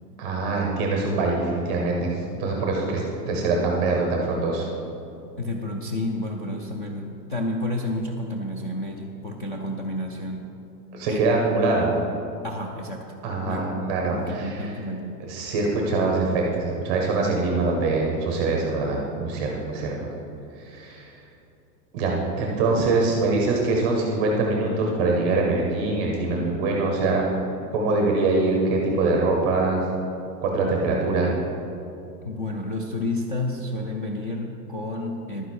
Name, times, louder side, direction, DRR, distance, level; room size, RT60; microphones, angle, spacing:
voice 1, 0.2-4.7 10.9-11.9 13.2-14.7 15.3-20.1 20.6-21.2 21.9-27.3 27.7-29.8 30.4-31.3, right 3 dB, 15° right, 0 dB, 0.5 m, -24 dB
voice 2, 5.4-10.5 11.1-11.3 12.4-13.1 13.5-15.3 32.2-35.4, left 1 dB, 35° left, 1 dB, 0.4 m, -30 dB
11.5 x 9.3 x 4.2 m, 2.8 s
supercardioid pair, 170°, 50 cm